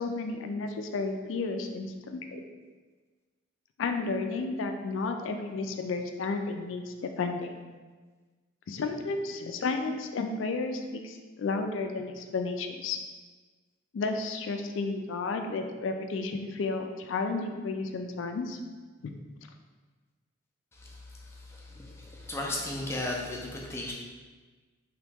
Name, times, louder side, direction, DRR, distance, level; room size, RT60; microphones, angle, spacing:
voice 1, 0.0-2.4 3.8-7.5 8.7-13.0 13.9-18.6, left 3 dB, 70° left, 5 dB, 0.4 m, -32 dB
voice 2, 21.5-23.9, left 1 dB, 15° left, -2 dB, 0.5 m, -35 dB
3.1 x 2.9 x 3.4 m, 1.4 s
head